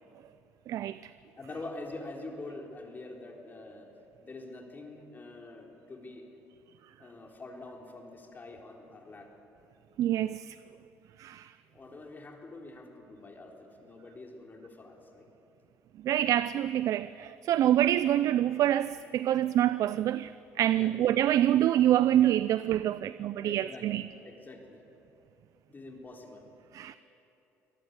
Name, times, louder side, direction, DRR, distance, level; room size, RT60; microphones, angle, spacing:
voice 1, 0.7-1.1 10.0-10.6 11.2-11.5 16.0-20.3 20.6-24.0 26.7-27.0, right 12 dB, 65° right, 0.4 m, -26 dB
voice 2, 1.4-3.9 4.2-6.4 7.0-9.3 11.7-15.3 20.8-20.9 23.4-24.8 25.7-26.4, left 2 dB, 30° left, 3.9 m, -45 dB
24.5 x 18.0 x 8.1 m
supercardioid pair, 80°, 6 cm